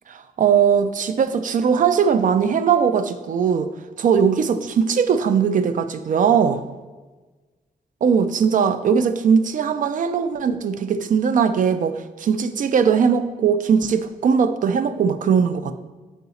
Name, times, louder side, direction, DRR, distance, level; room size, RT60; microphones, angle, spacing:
voice 1, 0.1-3.7 4.0-6.6 8.0-15.8, right 6 dB, 60° right, 10 dB, 0.4 m, -19 dB
7.0 x 4.7 x 4.0 m, 1.3 s
wide cardioid pair, 150°, 15 cm